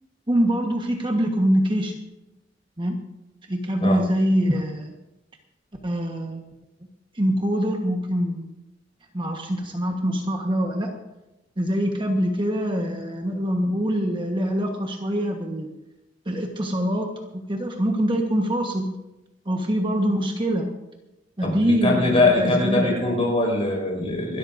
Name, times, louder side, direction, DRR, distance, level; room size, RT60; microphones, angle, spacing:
voice 1, 0.3-2.0 2.8-2.9 3.5-4.9 5.8-6.5 7.1-8.5 9.1-11.0 11.6-15.7 16.3-18.9 19.5-20.7 21.4-23.2, equal, 25° right, 2 dB, 1.3 m, -24 dB
voice 2, 21.4-24.4, left 2 dB, 35° left, 0 dB, 5.5 m, -22 dB
26.0 x 12.5 x 2.6 m, 0.96 s
head